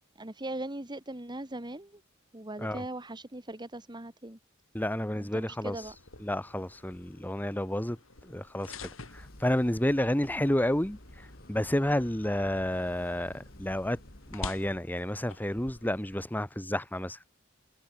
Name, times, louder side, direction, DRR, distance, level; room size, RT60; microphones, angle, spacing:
voice 1, 0.2-2.0 2.3-4.4 5.2-6.0, right 1 dB, 20° right, 2.0 m, -40 dB
voice 2, 4.7-14.0 14.3-17.2, left 1 dB, 10° left, 1.3 m, -31 dB
sound 1, 5.6-16.1, left 4 dB, 75° left, 3.9 m, -49 dB
sound 2, 9.1-14.8, left 1 dB, 50° left, 4.0 m, -52 dB
head